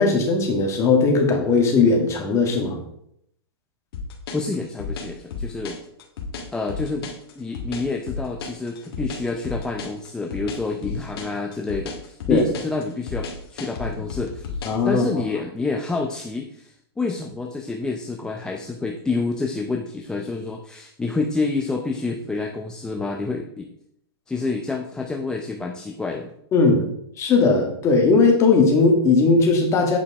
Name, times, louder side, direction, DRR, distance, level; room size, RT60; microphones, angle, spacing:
voice 1, 0.0-2.8 12.3-12.4 14.6-15.1 26.5-26.8 27.2-30.0, left 4 dB, 20° left, 2 dB, 1.8 m, -18 dB
sound 1, 3.9-14.8, left 4 dB, 65° left, 2.0 m, -32 dB
voice 2, 4.3-5.8 6.5-14.6 14.8-23.7 24.3-26.3, left 3 dB, 5° left, 1 dB, 0.5 m, -28 dB
8.7 x 5.0 x 4.8 m, 0.73 s
hypercardioid pair, 150°, 14 cm